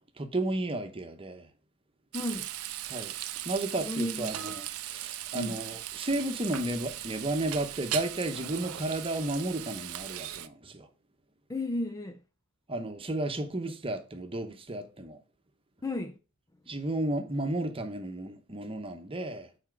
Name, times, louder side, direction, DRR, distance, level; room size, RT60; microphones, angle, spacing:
voice 1, 0.2-1.5 2.9-3.1 3.4-10.9 12.7-15.2 16.7-19.5, right 1 dB, 25° right, 1.0 m, -33 dB
voice 2, 2.1-2.5 3.8-4.4 5.3-5.6 11.5-12.2 15.8-16.1, left 1 dB, 15° left, 0.4 m, -33 dB
Frying (food), 2.1-10.5, right 12 dB, 75° right, 0.6 m, -38 dB
7.3 x 4.3 x 6.1 m
head